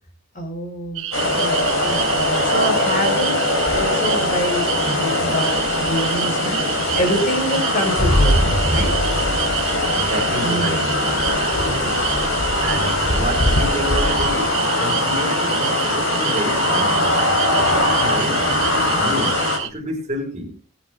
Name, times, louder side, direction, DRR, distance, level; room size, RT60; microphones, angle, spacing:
voice 1, 0.3-8.9 10.4-11.4 11.6-11.9, equal, 40° left, 5.0 m, -27 dB
sound 1, 1.0-19.7, right 12 dB, 65° right, 1.2 m, -28 dB
sound 2, 1.1-19.6, left 2 dB, 70° left, 4.2 m, -21 dB
sound 3, 8.0-10.7 11.0-11.1, equal, 20° left, 3.1 m, -22 dB
voice 2, 9.9-11.0 12.6-17.3 17.6-20.6, equal, 35° right, 4.0 m, -29 dB
20.0 x 9.3 x 3.6 m
head